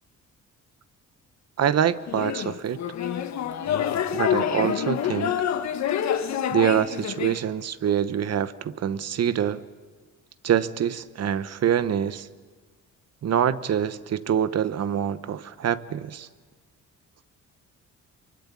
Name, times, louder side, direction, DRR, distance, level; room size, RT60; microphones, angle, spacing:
voice 1, 1.6-2.8 4.1-5.4 6.5-9.6 10.4-12.3 13.2-16.3, right 9 dB, 55° right, 14 dB, 1.1 m, -25 dB
sound 1, 2.1-7.4, left 9 dB, 65° left, 1.6 m, -27 dB
24.5 x 23.5 x 9.8 m, 1.5 s
cardioid pair, 90°, 30 cm